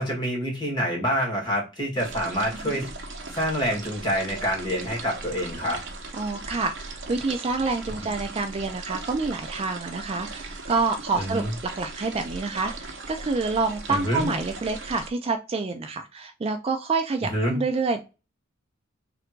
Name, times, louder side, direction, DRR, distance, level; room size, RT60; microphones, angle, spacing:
voice 1, 0.0-2.9 3.3-5.8 11.2-11.5 13.9-14.3 17.3-17.6, equal, 25° left, -2 dB, 1.8 m, -27 dB
sound 1, 2.0-15.1, right 3 dB, 65° right, 0.9 m, -38 dB
voice 2, 6.1-11.4 11.7-18.0, right 3 dB, 30° right, 7 dB, 0.4 m, -27 dB
3.4 x 2.6 x 4.4 m, 0.29 s
head